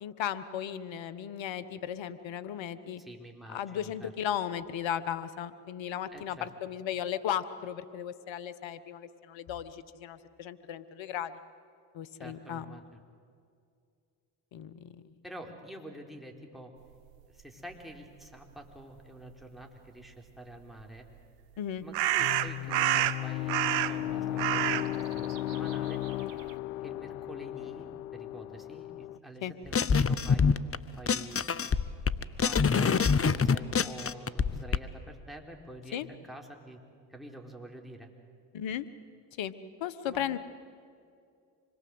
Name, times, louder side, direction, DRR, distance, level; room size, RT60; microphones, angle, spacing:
voice 1, 0.0-3.0 3.5-11.4 11.9-12.6 14.5-15.1 21.6-21.8 29.4-29.5 35.9-36.1 38.5-38.9 39.4-39.5 39.8-40.4, left 10 dB, 65° left, 14 dB, 1.4 m, -36 dB
voice 2, 3.0-4.1 6.1-6.5 12.2-12.8 15.2-16.7 17.3-21.1 21.8-26.0 26.8-30.5 31.0-31.4 32.1-36.8 37.1-38.1 40.1-40.2, right 1 dB, ahead, 1 dB, 4.4 m, -47 dB
sound 1, 20.8-20.9 21.9-24.1 24.4-26.5, right 13 dB, 90° right, 0.7 m, -28 dB
sound 2, 22.2-29.2, left 13 dB, 85° left, 0.6 m, -35 dB
sound 3, 29.7-30.8 31.1-34.8, left 5 dB, 30° left, 1.0 m, -25 dB
26.0 x 21.5 x 8.0 m, 2.3 s
hypercardioid pair, 50°, 50 cm